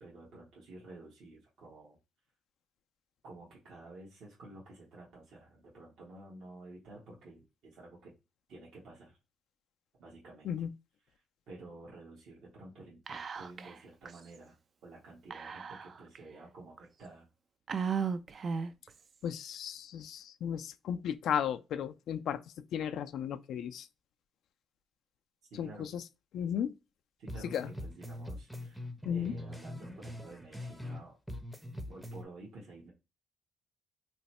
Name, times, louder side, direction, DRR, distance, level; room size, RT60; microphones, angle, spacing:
voice 1, 0.0-2.0 3.2-8.1 8.5-9.2 10.0-10.5 11.5-14.5 14.8-17.3 25.5-25.9 27.2-31.2 31.9-32.9, right 2 dB, 75° right, 1.2 m, -51 dB
Whispering, 13.1-13.8 14.1-14.2 15.3-16.2 16.8-16.9 17.7-18.9, right 6 dB, 45° right, 0.3 m, -35 dB
voice 2, 19.2-22.4 22.7-23.9 25.6-26.0 26.3-26.8 27.5-27.7 29.1-29.3, left 9 dB, 75° left, 0.3 m, -35 dB
sound 1, 27.3-31.0 31.3-32.2, left 1 dB, 5° right, 0.6 m, -43 dB
3.0 x 2.1 x 4.1 m
cardioid pair, 90°, 0 cm